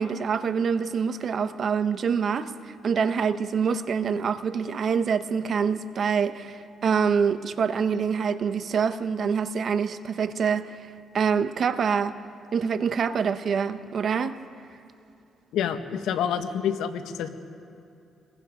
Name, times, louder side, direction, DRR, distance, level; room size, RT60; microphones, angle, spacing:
voice 1, 0.0-10.7 11.1-12.1 12.5-14.4, right 6 dB, 55° right, 1.0 m, -25 dB
voice 2, 15.5-17.3, left 8 dB, 85° left, 1.3 m, -27 dB
27.0 x 22.5 x 5.1 m
cardioid pair, 90°, 0 cm